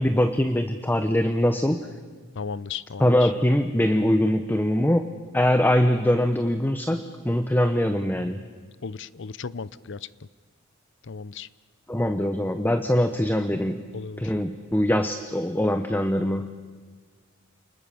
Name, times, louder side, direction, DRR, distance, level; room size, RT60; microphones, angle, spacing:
voice 1, 0.0-1.8 3.0-8.4 11.9-13.8 14.2-16.5, left 1 dB, 10° left, 9 dB, 0.8 m, -23 dB
voice 2, 2.4-3.1 8.8-10.0 11.1-11.5 13.9-14.2, left 5 dB, 65° left, 19 dB, 0.6 m, -35 dB
29.0 x 20.5 x 7.0 m, 1.5 s
head